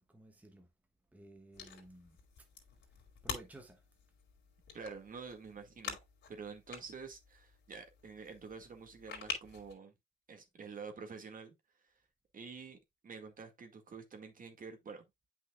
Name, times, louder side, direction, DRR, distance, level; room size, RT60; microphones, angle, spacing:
voice 1, 0.1-0.7 1.1-2.2 3.2-3.8, right 2 dB, 10° right, 1.2 m, -54 dB
sound 1, 1.5-9.7, left 5 dB, 65° left, 2.8 m, -47 dB
voice 2, 4.7-6.0 6.3-9.9 10.3-11.5 11.8-11.9 12.3-15.0, right 5 dB, 45° right, 1.8 m, -48 dB
8.2 x 5.6 x 2.3 m
cardioid pair, 90°, 20 cm